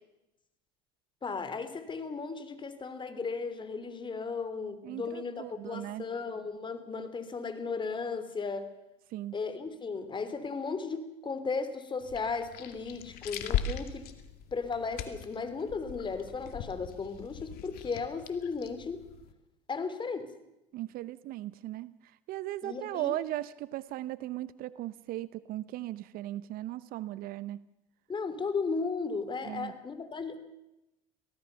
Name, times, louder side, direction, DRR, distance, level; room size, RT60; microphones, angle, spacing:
voice 1, 1.2-8.7 9.3-14.1 14.5-19.0 19.7-20.3 22.6-23.2 28.1-30.4, left 4 dB, 30° left, 11 dB, 3.2 m, -35 dB
voice 2, 4.8-6.1 9.1-9.3 20.7-22.0 22.3-27.6 29.4-29.7, right 15 dB, 60° right, 17 dB, 0.7 m, -37 dB
sound 1, 12.0-19.3, left 8 dB, 60° left, 2.3 m, -39 dB
24.0 x 17.0 x 7.0 m, 0.92 s
hypercardioid pair, 75°, 17 cm